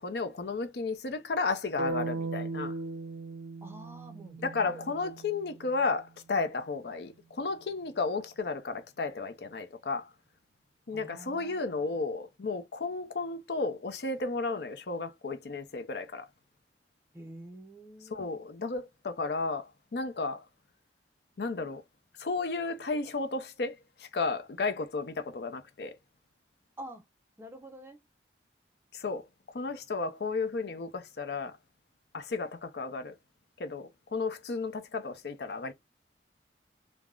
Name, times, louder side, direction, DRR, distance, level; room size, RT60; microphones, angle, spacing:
voice 1, 0.0-2.7 4.4-10.1 10.9-16.3 18.1-20.4 21.4-21.8 22.2-25.9 28.9-29.2 29.5-31.6 32.1-33.1 33.6-35.7, left 3 dB, 65° left, 0.5 m, -33 dB
sound 1, 1.8-5.8, right 3 dB, 85° right, 0.4 m, -37 dB
voice 2, 3.6-5.1 10.9-12.2 17.1-18.5 26.8-27.1 27.4-28.0, right 1 dB, 15° right, 0.5 m, -48 dB
3.4 x 2.0 x 2.3 m
head